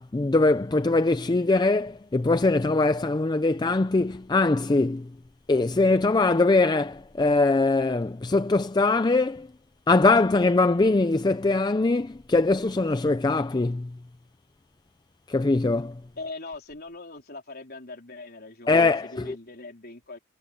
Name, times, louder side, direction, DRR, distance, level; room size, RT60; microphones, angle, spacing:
voice 1, 0.0-5.1 5.5-9.5 9.9-13.9 15.3-16.0 18.7-19.4, left 3 dB, 20° left, 0.4 m, -22 dB
voice 2, 16.2-20.2, left 3 dB, 50° left, 4.0 m, -41 dB
head